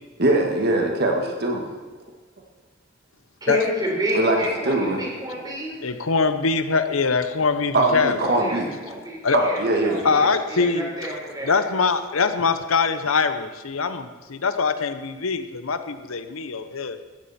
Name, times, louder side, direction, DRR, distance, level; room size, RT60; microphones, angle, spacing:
voice 1, 0.2-1.7 4.1-4.4 4.6-5.0 5.3-5.4 7.7-8.7 9.3-10.1, right 2 dB, 50° right, 1 dB, 1.8 m, -21 dB
voice 2, 3.4-5.7 8.2-11.6, equal, 20° right, -2 dB, 4.2 m, -29 dB
voice 3, 5.8-8.2 9.2-9.4 10.0-10.9 11.4-17.0, left 4 dB, 80° left, 10 dB, 0.9 m, -23 dB
16.0 x 14.0 x 4.3 m, 1.3 s
head